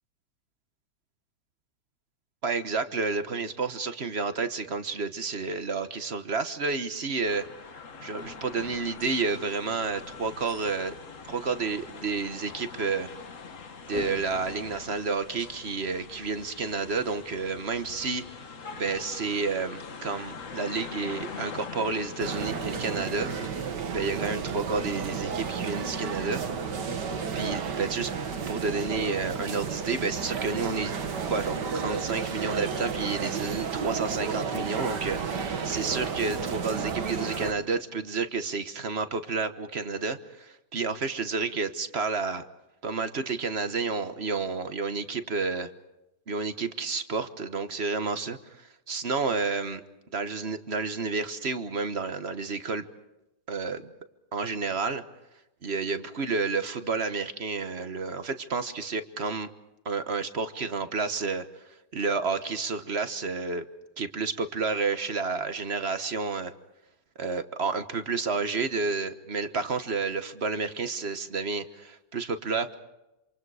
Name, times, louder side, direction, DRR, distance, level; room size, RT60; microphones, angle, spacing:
voice 1, 2.4-7.4 8.0-11.0 11.3-13.1 13.9-18.2 18.7-23.3 23.9-26.4 27.3-28.1 28.5-30.9 31.3-42.4 42.8-45.7 46.3-49.8 50.1-52.8 53.5-53.9 54.3-55.0 55.6-59.5 59.8-61.4 61.9-63.6 64.0-66.5 67.2-72.8, right 4 dB, 40° right, 10 dB, 1.2 m, -30 dB
sound 1, 7.3-23.5, left 5 dB, 45° left, 1.6 m, -43 dB
sound 2, 22.2-37.5, right 6 dB, 60° right, 2.1 m, -32 dB
28.0 x 27.0 x 4.9 m, 0.95 s
omnidirectional pair, 2.1 m